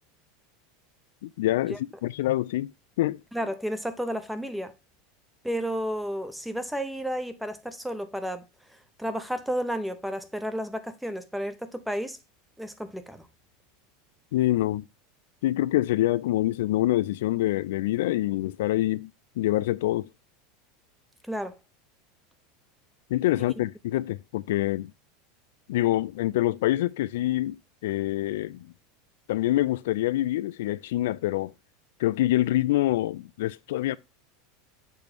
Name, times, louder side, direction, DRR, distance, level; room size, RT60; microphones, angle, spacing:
voice 1, 1.2-2.7 3.0-3.2 14.3-14.8 15.4-19.1 19.4-20.1 23.1-24.9 25.7-28.7 29.3-31.5 32.0-34.0, left 15 dB, 80° left, 0.3 m, -26 dB
voice 2, 3.3-4.7 5.4-8.4 8.7-12.2 12.6-13.3 21.2-21.6, equal, ahead, 0.6 m, -32 dB
6.9 x 3.1 x 5.3 m
supercardioid pair, 145°, 0 cm